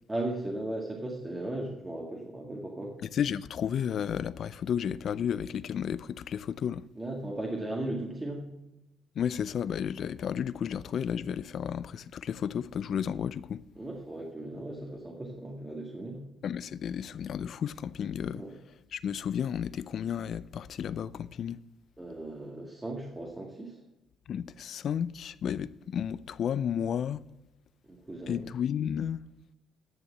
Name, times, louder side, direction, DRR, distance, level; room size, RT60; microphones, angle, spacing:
voice 1, 0.1-3.0 7.0-8.5 13.8-16.3 18.3-18.5 22.0-23.8 27.9-28.4, right 1 dB, 20° right, 1.9 m, -37 dB
voice 2, 3.0-6.9 9.2-13.6 16.4-18.4 18.9-21.6 24.3-27.2 28.3-29.2, left 8 dB, 65° left, 0.4 m, -32 dB
10.5 x 6.8 x 7.3 m
supercardioid pair, 65°, 0 cm